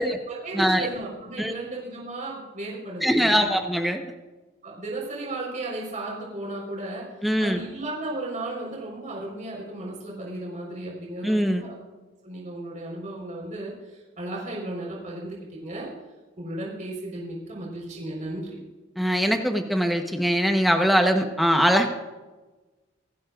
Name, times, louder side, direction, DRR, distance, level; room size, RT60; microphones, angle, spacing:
voice 1, 0.0-3.6 4.6-7.1 7.4-11.7 12.2-15.4 15.6-15.9 16.4-18.6, right 2 dB, 35° right, -3 dB, 4.3 m, -34 dB
voice 2, 0.5-0.9 1.4-1.5 3.0-4.0 7.2-7.6 11.2-11.7 19.0-21.9, equal, ahead, 4 dB, 1.0 m, -22 dB
27.0 x 11.5 x 2.5 m, 1.2 s
head